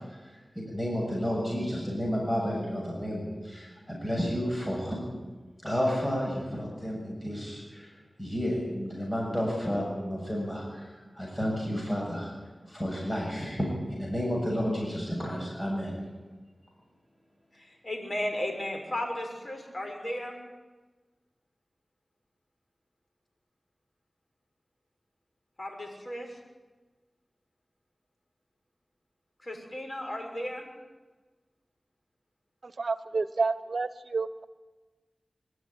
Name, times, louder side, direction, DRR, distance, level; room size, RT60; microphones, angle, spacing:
voice 1, 0.0-5.0 5.6-7.9 8.2-12.3 12.7-16.0, equal, 20° left, -2 dB, 7.2 m, -31 dB
voice 2, 17.5-20.4 25.6-26.4 29.4-30.7, left 1 dB, 45° left, 2 dB, 6.3 m, -35 dB
voice 3, 32.6-34.3, right 4 dB, 70° right, 13 dB, 1.0 m, -29 dB
23.0 x 13.0 x 9.9 m, 1.3 s
cardioid pair, 45°, 0 cm